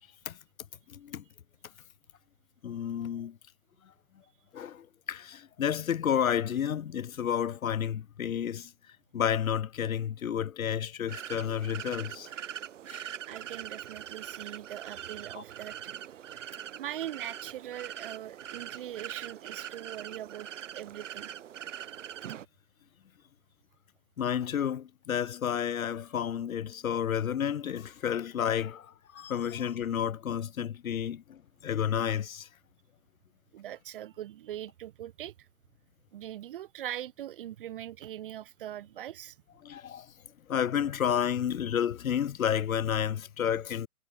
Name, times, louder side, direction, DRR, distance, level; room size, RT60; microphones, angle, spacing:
voice 1, 0.9-1.2 2.6-3.4 4.5-8.7 9.1-12.3 12.9-13.1 15.3-15.4 24.2-32.5 39.6-40.1 40.5-43.9, left 9 dB, 70° left, 1.3 m, -31 dB
sound 1, 11.1-22.5, right 10 dB, 55° right, 3.9 m, -42 dB
voice 2, 13.2-16.0 16.2-16.4 16.7-20.5 20.7-21.3 33.5-35.5 36.1-39.4, right 12 dB, 40° right, 0.6 m, -41 dB
hypercardioid pair, 130°, 44 cm